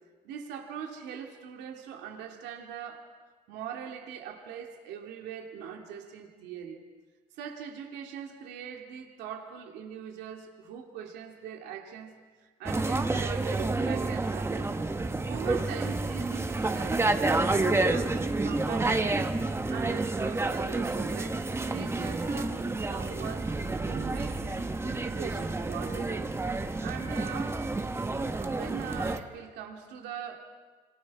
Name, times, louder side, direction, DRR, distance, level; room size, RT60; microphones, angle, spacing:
voice 1, 0.2-3.1 3.5-6.8 7.4-14.8 15.3-19.2 19.7-21.4 21.7-26.3 26.8-27.6 28.4-30.4, right 8 dB, 85° right, 2.5 m, -41 dB
sound 1, 12.7-29.2, right 2 dB, 15° right, 1.1 m, -29 dB
26.0 x 26.0 x 4.8 m
cardioid pair, 110°, 17 cm